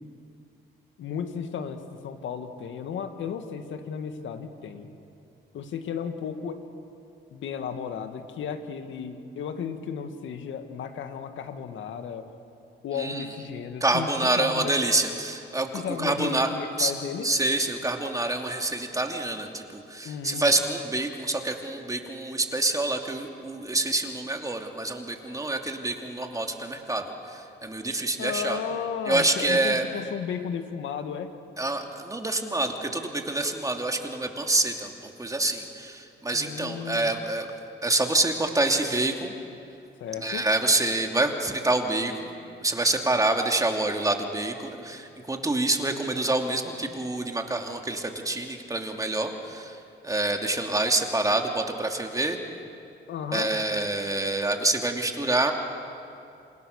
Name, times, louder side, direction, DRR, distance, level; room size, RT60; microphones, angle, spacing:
voice 1, 1.0-4.9 5.5-6.6 7.3-12.3 12.8-14.8 15.7-17.3 20.0-20.6 28.2-31.3 36.3-37.2 40.0-40.5 53.1-53.5, left 7 dB, 75° left, 7 dB, 2.1 m, -34 dB
voice 2, 12.9-13.3 13.8-16.5 16.8-16.9 17.2-28.6 29.1-29.8 31.6-37.5 37.8-39.3 40.2-42.3 42.6-49.8 50.0-52.4 53.3-55.5, right 2 dB, 15° right, 3 dB, 2.7 m, -27 dB
28.0 x 28.0 x 6.7 m, 2.6 s
cardioid pair, 90°, 20 cm